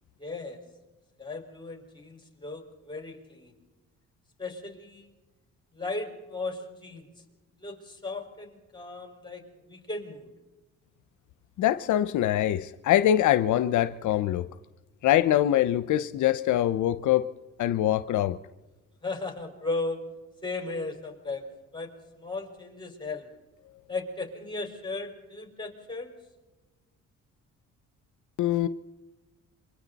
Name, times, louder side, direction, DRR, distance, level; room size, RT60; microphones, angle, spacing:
voice 1, 0.2-0.6 1.2-3.5 4.4-5.1 5.7-7.0 7.6-9.4 9.7-10.3 19.0-20.0 20.4-21.5 21.7-21.9 22.2-23.3 23.9-26.1, left 3 dB, 15° left, 3 dB, 5.0 m, -36 dB
voice 2, 11.6-14.4 15.0-17.3 17.6-18.4 28.4-28.7, left 12 dB, 75° left, 13 dB, 0.7 m, -23 dB
27.0 x 23.5 x 4.1 m, 1.1 s
cardioid pair, 90°, 30 cm